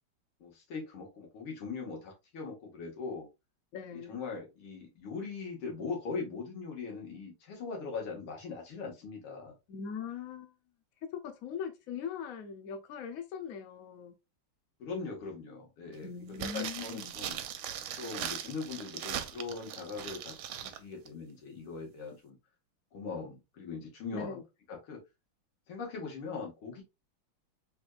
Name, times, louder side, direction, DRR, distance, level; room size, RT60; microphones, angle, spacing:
voice 1, 0.4-3.3 4.1-9.6 14.8-17.4 18.0-20.3 20.6-22.4 22.9-24.4 24.7-25.0 25.7-26.8, left 4 dB, 90° left, 2.4 m, -40 dB
voice 2, 3.7-4.2 9.7-10.5 11.0-14.1 16.0-17.1 24.1-24.4, left 7 dB, 65° left, 0.8 m, -40 dB
sound 1, 16.3-20.8 21.1-21.2, right 10 dB, 85° right, 1.5 m, -39 dB
4.3 x 3.6 x 2.3 m
omnidirectional pair, 2.3 m